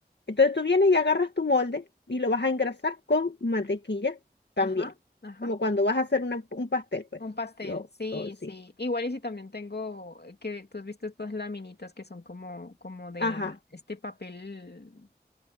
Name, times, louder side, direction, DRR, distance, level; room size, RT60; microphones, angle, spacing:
voice 1, 0.3-4.2 4.6-4.9 5.4-7.0 7.6-7.8 8.1-8.3 13.2-13.5, left 3 dB, 85° left, 1.9 m, -26 dB
voice 2, 4.6-4.9 5.2-5.5 7.2-15.1, left 2 dB, 70° left, 2.5 m, -37 dB
wide cardioid pair, 40°, 17 cm